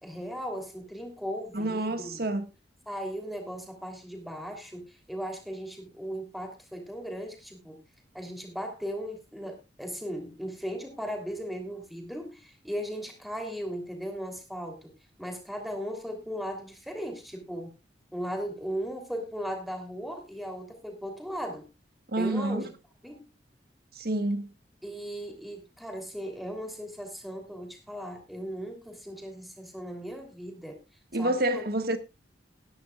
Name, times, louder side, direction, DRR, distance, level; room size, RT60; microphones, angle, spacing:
voice 1, 0.0-2.3 2.9-7.8 8.1-14.9 15.2-17.8 18.1-21.6 22.2-22.7 23.0-23.3 24.8-30.8 31.2-31.6, equal, ahead, 3.1 m, -37 dB
voice 2, 1.5-2.4 22.1-22.6 24.0-24.5 31.1-32.0, right 1 dB, 55° right, 1.6 m, -28 dB
19.0 x 10.5 x 2.3 m
head